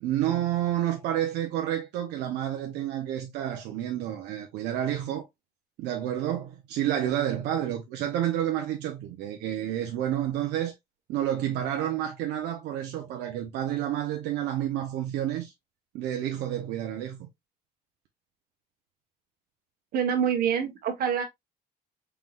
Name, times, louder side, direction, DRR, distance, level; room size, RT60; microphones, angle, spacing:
voice 1, 0.0-5.2 5.8-10.7 11.1-15.5 15.9-17.3, right 11 dB, 85° right, 0.9 m, -29 dB
voice 2, 19.9-21.2, right 8 dB, 60° right, 1.4 m, -26 dB
4.6 x 3.8 x 2.4 m
cardioid pair, 110°, 17 cm